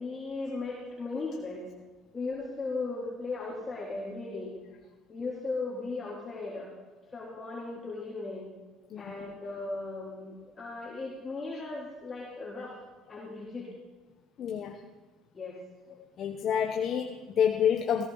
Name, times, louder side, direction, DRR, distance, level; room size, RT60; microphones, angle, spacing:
voice 1, 0.0-1.6 2.1-4.5 5.1-6.7 7.1-8.5 9.0-12.7 13.1-13.7 15.3-15.5, left 3 dB, 25° left, -6 dB, 3.2 m, -37 dB
voice 2, 14.4-14.8 16.2-18.1, left 8 dB, 50° left, 3 dB, 1.0 m, -28 dB
17.0 x 16.0 x 4.0 m, 1.3 s
supercardioid pair, 100°, 0 cm